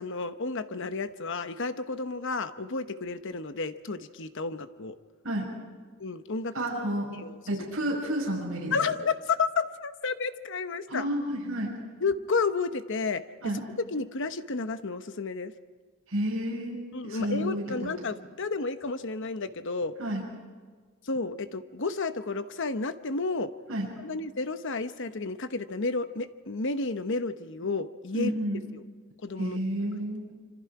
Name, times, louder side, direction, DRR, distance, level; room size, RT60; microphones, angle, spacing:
voice 1, 0.0-5.0 6.0-6.5 7.2-7.4 8.7-11.0 12.0-13.2 13.7-15.5 16.9-19.9 21.0-23.5 24.0-28.3 28.7-28.8 29.2-29.6, left 4 dB, 60° left, 10 dB, 1.0 m, -31 dB
voice 2, 6.5-8.8 10.9-11.8 13.4-13.7 16.1-17.9 20.0-20.2 23.7-23.9 28.1-28.6 29.4-30.3, right 1 dB, 70° right, -5 dB, 5.7 m, -31 dB
26.5 x 25.5 x 4.8 m, 1.5 s
head